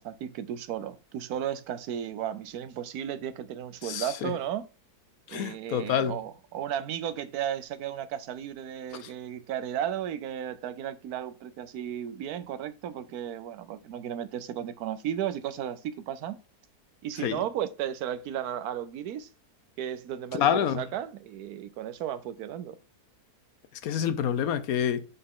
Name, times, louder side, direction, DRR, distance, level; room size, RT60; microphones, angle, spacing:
voice 1, 0.0-4.7 5.3-16.4 17.0-19.3 19.8-22.8, right 10 dB, 75° right, 1.1 m, -34 dB
voice 2, 3.8-4.3 5.3-6.2 8.9-9.1 17.2-17.4 20.3-20.8 23.8-25.1, left 9 dB, 70° left, 1.0 m, -27 dB
6.1 x 5.4 x 3.7 m
omnidirectional pair, 1.7 m